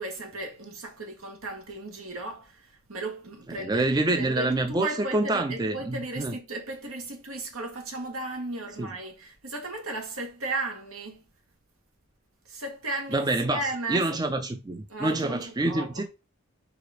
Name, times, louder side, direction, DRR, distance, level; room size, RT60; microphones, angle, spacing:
voice 1, 0.0-2.6 2.9-11.2 12.5-14.1 14.9-16.1, right 2 dB, 90° right, 1.8 m, -35 dB
voice 2, 3.6-6.4 8.8-8.9 13.1-16.1, right 2 dB, 20° right, 0.4 m, -27 dB
4.9 x 4.0 x 5.2 m
head